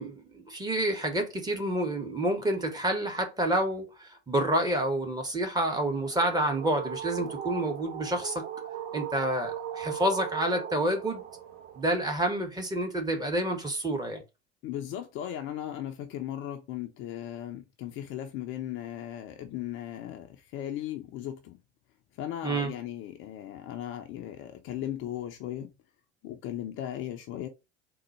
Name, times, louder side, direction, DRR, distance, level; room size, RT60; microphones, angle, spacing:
voice 1, 0.0-8.4 8.9-11.2 11.8-14.2 22.4-22.7, right 1 dB, 10° right, 0.9 m, -29 dB
sound 1, 5.8-11.9, right 10 dB, 25° right, 0.5 m, -38 dB
voice 2, 14.6-21.6 22.2-25.7 26.2-27.5, left 11 dB, 35° left, 0.5 m, -37 dB
3.8 x 2.2 x 4.2 m
figure-of-eight pair, 70°, 35 cm